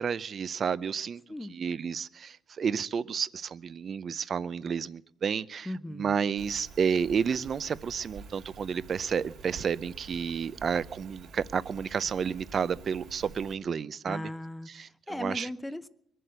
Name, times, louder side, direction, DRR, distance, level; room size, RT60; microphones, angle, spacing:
voice 1, 0.0-1.2 1.5-14.3 14.7-15.5, right 6 dB, 50° right, 0.6 m, -31 dB
voice 2, 5.7-6.2 14.1-15.9, left 1 dB, 10° left, 0.7 m, -38 dB
Rain, 6.4-13.5, right 5 dB, 80° right, 3.2 m, -48 dB
22.0 x 7.7 x 8.0 m
cardioid pair, 90°, 0 cm